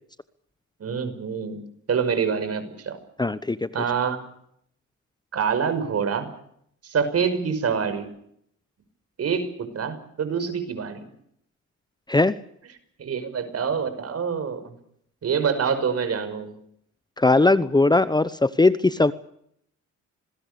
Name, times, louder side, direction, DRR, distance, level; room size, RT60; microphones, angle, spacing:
voice 1, 0.8-3.0 3.7-4.2 5.3-6.3 6.8-8.1 9.2-11.0 13.0-14.7 15.2-16.6, right 6 dB, 55° right, 10 dB, 5.7 m, -26 dB
voice 2, 3.2-3.7 12.1-12.3 17.2-19.1, left 2 dB, 15° left, 15 dB, 0.9 m, -19 dB
26.0 x 20.5 x 6.9 m, 0.70 s
cardioid pair, 90°, 30 cm